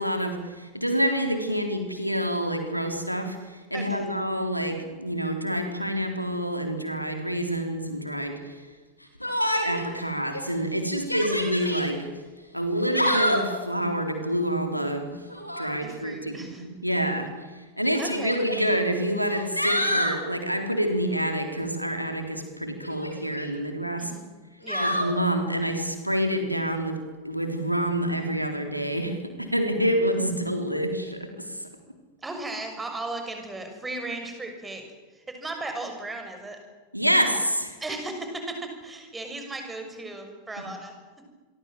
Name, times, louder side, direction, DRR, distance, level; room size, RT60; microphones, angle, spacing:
voice 1, 0.0-8.6 9.2-9.3 9.6-12.1 12.5-15.2 15.6-17.3 17.8-24.1 24.8-27.0 27.2-31.6 36.9-37.8, equal, 90° right, 5 dB, 3.8 m, -27 dB
voice 2, 3.7-4.1 15.8-16.7 18.0-18.4 24.0-24.3 24.6-24.9 32.2-34.8 35.1-36.6 37.8-40.9, right 2 dB, 10° right, 5 dB, 6.5 m, -36 dB
Yell, 9.2-9.9 10.3-10.4 11.0-11.9 12.7-13.6 15.3-15.7 16.9-17.0 17.9-18.7 19.2-20.2 22.8-23.5 24.7-25.1, equal, 90° left, 4.0 m, -27 dB
27.5 x 23.5 x 7.7 m, 1.3 s
figure-of-eight pair, 90°, 0 cm